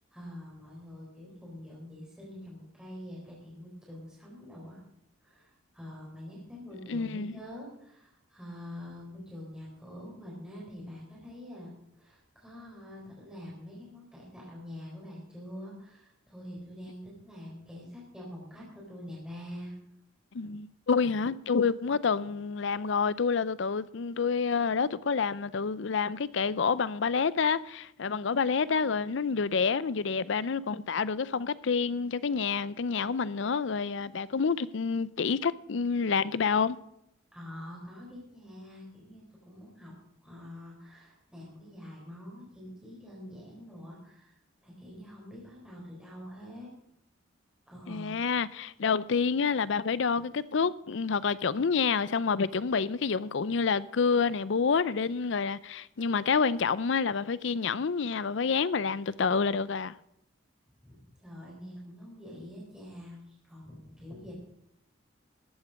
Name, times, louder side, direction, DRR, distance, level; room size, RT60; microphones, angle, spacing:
voice 1, 0.1-4.8 5.2-19.7 37.3-39.9 40.2-44.3 44.6-46.7 47.7-48.2 60.8-63.2 63.4-64.3, left 1 dB, 5° right, 4.0 m, -45 dB
voice 2, 6.9-7.3 20.3-36.8 47.9-59.9, left 5 dB, 65° left, 0.5 m, -28 dB
13.5 x 8.3 x 6.3 m
head